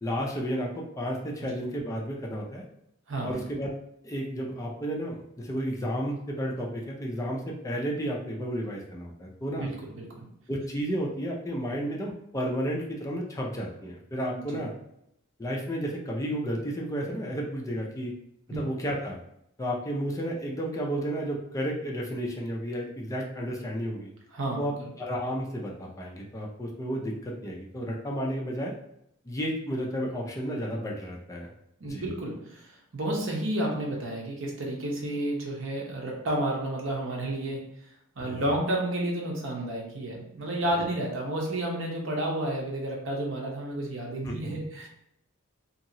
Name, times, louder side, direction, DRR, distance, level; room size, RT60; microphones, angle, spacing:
voice 1, 0.0-2.6 3.2-3.7 4.0-9.7 10.5-14.7 15.4-18.1 18.5-19.2 19.6-24.1 24.6-24.7 25.0-28.7 29.3-31.5 31.9-32.1 38.2-38.4 40.8-40.9 44.2-44.6, equal, 15° left, -1 dB, 0.4 m, -32 dB
voice 2, 3.1-3.4 9.6-10.3 14.4-14.6 18.5-18.6 24.3-24.9 31.8-37.6 38.2-44.9, right 1 dB, 70° right, -1 dB, 0.8 m, -31 dB
2.9 x 2.7 x 2.7 m, 0.76 s
head